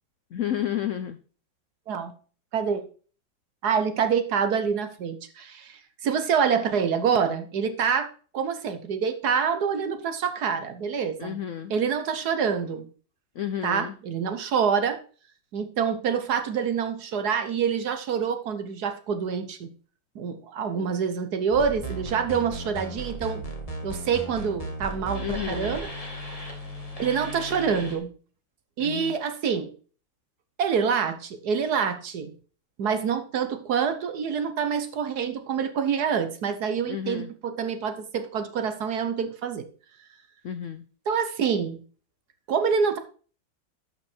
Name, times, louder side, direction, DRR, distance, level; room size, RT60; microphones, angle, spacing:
voice 1, 0.3-1.2 11.2-11.7 13.4-13.9 25.2-25.8 28.8-29.1 36.9-37.3 40.4-40.8, left 10 dB, 75° left, 11 dB, 0.7 m, -31 dB
voice 2, 2.5-2.9 3.6-8.1 8.3-11.4 11.7-12.9 13.6-15.0 15.5-19.7 20.1-23.4 23.8-25.9 27.0-28.1 28.8-29.7 30.6-32.3 32.8-39.7 41.1-41.8 42.5-43.0, right 6 dB, 60° right, 9 dB, 1.4 m, -26 dB
sound 1, 21.5-28.0, right 1 dB, 20° left, 1.9 m, -36 dB
11.5 x 5.8 x 4.4 m, 0.40 s
omnidirectional pair, 2.1 m